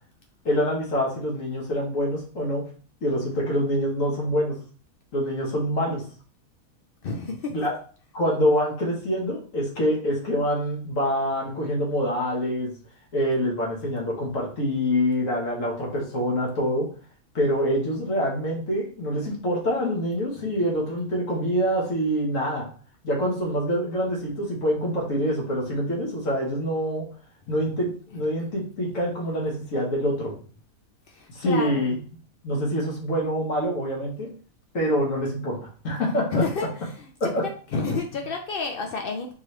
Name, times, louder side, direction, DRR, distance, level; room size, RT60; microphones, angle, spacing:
voice 1, 0.4-2.7 3.0-4.6 5.1-6.0 7.5-7.8 8.1-12.7 13.1-16.9 17.3-22.7 23.0-27.1 27.5-30.4 31.3-32.0 32.4-34.3 34.7-36.7 37.2-37.5, equal, 55° left, -3 dB, 1.6 m, -25 dB
voice 2, 7.0-7.5 20.4-20.5 31.1-31.9 36.3-36.7 37.0-37.1 37.7-39.3, left 3 dB, 85° left, 3 dB, 0.5 m, -29 dB
4.5 x 2.9 x 3.2 m, 0.41 s
omnidirectional pair, 1.7 m